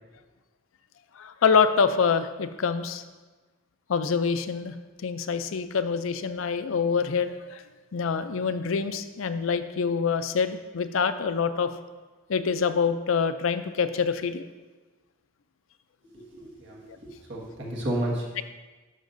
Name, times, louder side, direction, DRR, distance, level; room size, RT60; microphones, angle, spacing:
voice 1, 1.2-3.0 3.9-4.7 5.0-7.6 7.9-11.7 12.3-14.4, left 5 dB, 80° left, 11 dB, 0.5 m, -25 dB
voice 2, 16.0-18.3, right 1 dB, 65° right, -3 dB, 1.7 m, -32 dB
11.5 x 6.3 x 2.6 m, 1.3 s
head